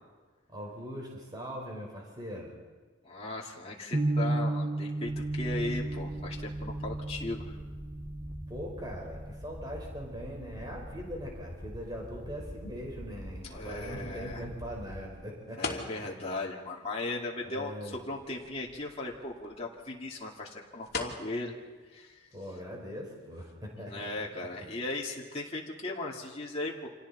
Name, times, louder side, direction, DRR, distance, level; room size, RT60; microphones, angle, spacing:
voice 1, 0.5-2.5 8.5-15.8 17.4-18.0 22.3-24.1 24.4-24.6, equal, 20° right, -1 dB, 4.7 m, -41 dB
voice 2, 3.0-7.6 13.4-14.4 15.6-21.6 21.9-22.3 23.7-26.9, left 2 dB, 30° left, -3 dB, 2.5 m, -37 dB
sound 1, 3.9-10.0, right 2 dB, 45° right, 0.8 m, -34 dB
sound 2, 5.1-15.1, equal, 10° left, 1.1 m, -45 dB
sound 3, 11.5-24.8, left 4 dB, 50° left, 2.8 m, -47 dB
30.0 x 27.0 x 4.3 m, 1.4 s
head